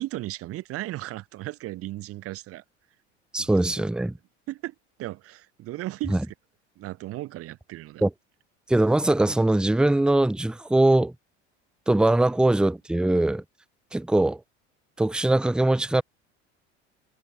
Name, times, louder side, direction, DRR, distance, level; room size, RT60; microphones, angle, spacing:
voice 1, 0.0-2.6 3.4-3.5 3.8-3.9 4.5-6.2 6.8-8.0, right 16 dB, 40° right, 0.7 m, -35 dB
voice 2, 3.3-4.1 6.1-6.2 8.0-8.1 8.7-11.1 11.9-13.4 13.9-14.4 15.0-16.0, right 2 dB, ahead, 0.7 m, -21 dB
hypercardioid pair, 80°, 35 cm